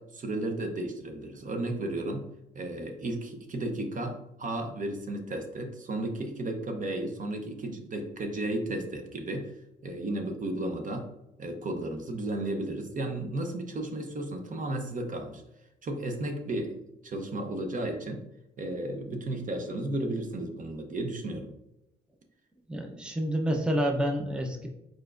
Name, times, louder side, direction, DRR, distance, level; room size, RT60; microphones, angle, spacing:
voice 1, 0.0-2.3 2.5-9.5 9.8-11.1 11.4-15.4 15.8-16.8 17.0-18.2 18.6-21.5, right 1 dB, 40° right, 5 dB, 0.8 m, -33 dB
voice 2, 22.7-24.7, equal, 5° right, 2 dB, 0.6 m, -28 dB
4.7 x 4.4 x 2.5 m, 0.87 s
cardioid pair, 90°, 20 cm